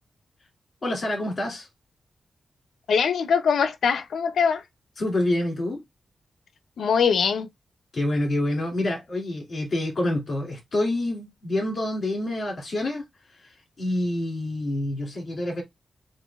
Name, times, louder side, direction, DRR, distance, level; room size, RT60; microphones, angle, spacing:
voice 1, 0.8-1.7 5.0-5.8 7.9-15.6, left 1 dB, 40° left, 2.5 m, -27 dB
voice 2, 2.9-4.6 6.8-7.5, left 6 dB, 80° left, 0.6 m, -22 dB
7.0 x 2.5 x 2.3 m
wide cardioid pair, 160°, 0 cm